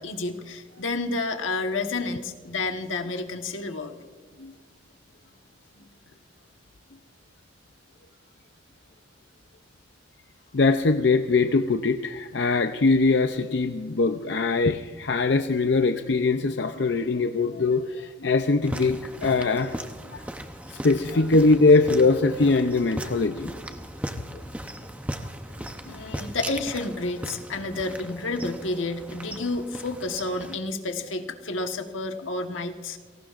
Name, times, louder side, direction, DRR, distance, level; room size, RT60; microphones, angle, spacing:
voice 1, 0.0-3.9 25.8-33.0, left 3 dB, 90° left, 5 dB, 1.4 m, -30 dB
voice 2, 10.5-19.8 20.1-20.2 20.7-23.5, left 3 dB, 65° left, 8 dB, 0.6 m, -22 dB
sound 1, 18.6-30.6, right 1 dB, 5° right, 0.7 m, -38 dB
30.0 x 18.0 x 2.5 m, 1.5 s
head